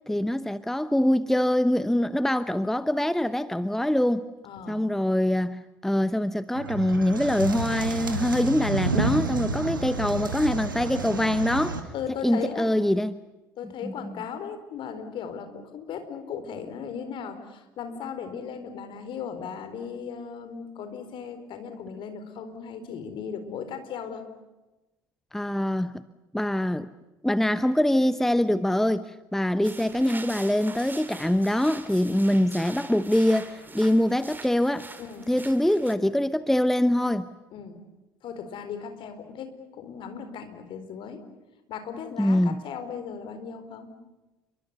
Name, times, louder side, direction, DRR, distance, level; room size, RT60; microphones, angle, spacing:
voice 1, 0.1-4.3 4.7-11.8 12.2-13.2 13.8-14.1 25.3-26.0 26.3-26.9 27.2-34.9 35.3-37.3 42.2-42.6, left 1 dB, 5° left, 0.9 m, -24 dB
voice 2, 4.4-4.8 11.9-12.7 13.6-24.3 35.0-35.3 37.5-37.8 38.2-41.2 41.7-43.9, left 7 dB, 50° left, 4.5 m, -37 dB
sound 1, 6.6-11.8, right 3 dB, 85° right, 2.2 m, -30 dB
sound 2, 29.6-35.9, right 3 dB, 20° right, 3.3 m, -43 dB
29.5 x 24.0 x 6.9 m
figure-of-eight pair, 60°, 11 cm